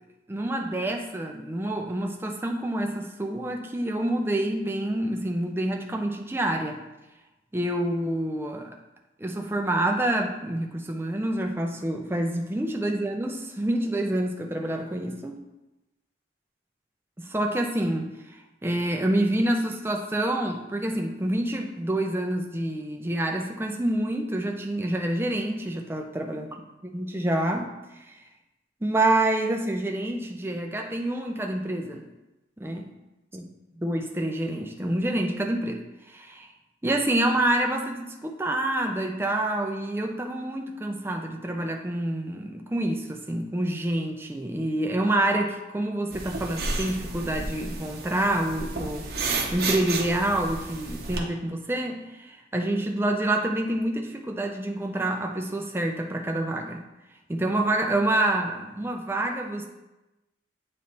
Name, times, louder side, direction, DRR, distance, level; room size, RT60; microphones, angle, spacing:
voice 1, 0.3-6.8 7.5-8.8 9.2-15.4 17.2-18.1 18.6-26.5 26.8-27.7 28.0-28.1 28.8-32.0 32.6-32.9 33.3-33.5 33.8-36.5 36.8-49.1 49.5-56.8 57.3-59.7, right 1 dB, 10° right, 2 dB, 0.5 m, -27 dB
sound 1, 46.1-51.2, right 3 dB, 55° right, 0.8 m, -32 dB
8.4 x 3.2 x 4.1 m, 1.0 s
head